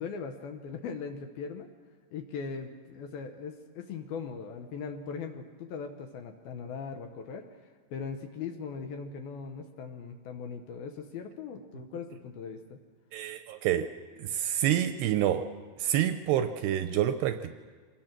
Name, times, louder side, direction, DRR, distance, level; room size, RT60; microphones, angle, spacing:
voice 1, 0.0-1.7 2.1-7.5 7.9-12.8, left 5 dB, 70° left, 5 dB, 2.6 m, -39 dB
voice 2, 13.1-13.9 14.2-15.4 15.8-17.5, right 11 dB, 80° right, 9 dB, 2.5 m, -27 dB
26.0 x 20.0 x 6.0 m, 1.5 s
omnidirectional pair, 5.3 m